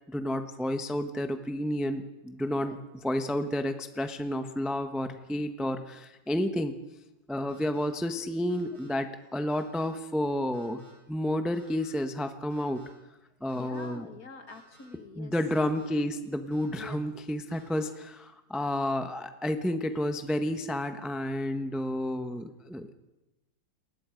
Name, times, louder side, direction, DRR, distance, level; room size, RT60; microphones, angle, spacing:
voice 1, 0.1-6.8 7.3-10.8 11.1-12.8 13.4-14.1 15.2-22.9, left 1 dB, ahead, 7 dB, 0.8 m, -31 dB
sound 1, 7.5-7.9 8.5-8.9 9.5-9.9 10.5-10.9 11.5-11.9 12.5-12.9 13.5-13.9 14.5-14.9 15.5-15.9 16.5-16.9 17.5-17.9, equal, 70° right, 7.6 m, -58 dB
voice 2, 13.5-15.3 16.7-17.0, left 3 dB, 50° left, 7 dB, 2.2 m, -45 dB
29.5 x 20.5 x 5.2 m, 1.0 s
omnidirectional pair, 2.1 m